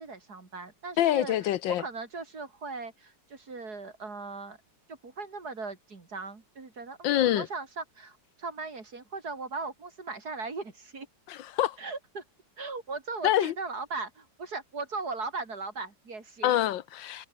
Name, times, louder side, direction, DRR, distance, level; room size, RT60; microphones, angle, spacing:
voice 1, 0.0-4.6 4.9-11.1 11.8-12.2 12.6-16.6, right 3 dB, 55° right, 3.9 m, -38 dB
voice 2, 1.0-1.8 7.0-7.5 11.3-11.8 13.2-13.5 16.4-17.3, left 12 dB, 90° left, 1.6 m, -26 dB
omnidirectional pair, 2.0 m